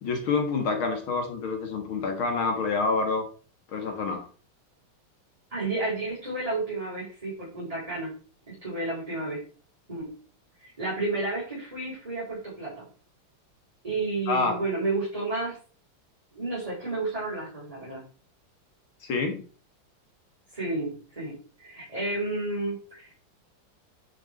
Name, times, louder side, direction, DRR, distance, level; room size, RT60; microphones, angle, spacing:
voice 1, 0.0-3.2 3.7-4.3 14.3-14.5 19.0-19.4, left 4 dB, 70° left, 4 dB, 2.4 m, -27 dB
voice 2, 5.5-8.1 8.5-9.4 9.9-10.1 10.6-12.9 13.8-15.6 16.3-18.0 20.5-23.1, right 2 dB, 15° right, -8 dB, 4.4 m, -31 dB
10.0 x 5.6 x 4.5 m, 0.39 s
omnidirectional pair, 2.4 m